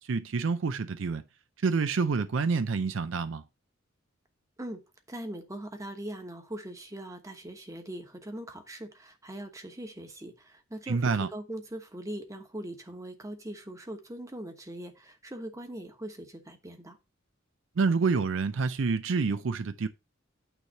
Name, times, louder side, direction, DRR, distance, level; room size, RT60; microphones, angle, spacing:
voice 1, 0.1-1.2 1.6-3.4 10.9-11.3 17.8-19.9, right 4 dB, 65° right, 0.5 m, -27 dB
voice 2, 5.1-17.0, right 1 dB, 15° right, 1.2 m, -41 dB
9.0 x 3.2 x 6.4 m
head